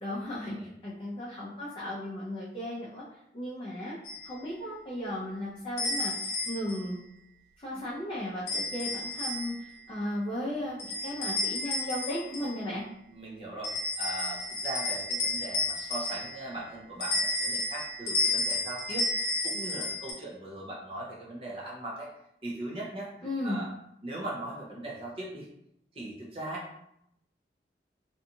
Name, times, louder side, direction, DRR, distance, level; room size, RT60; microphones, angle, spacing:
voice 1, 0.0-3.0 3.3-3.9 4.2-6.1 6.5-7.0 7.6-12.8 23.2-23.6, left 1 dB, 30° left, -8 dB, 0.5 m, -35 dB
sound 1, 4.0-4.3 5.8-6.8 8.5-9.7 10.8-12.6 13.6-16.5 17.0-20.1, left 2 dB, 65° left, 0.8 m, -32 dB
voice 2, 13.1-19.1 19.4-22.1 22.4-23.1 23.4-23.7 24.0-25.5 25.9-26.8, right 1 dB, 30° right, -4 dB, 0.6 m, -39 dB
2.6 x 2.3 x 2.7 m, 0.78 s
head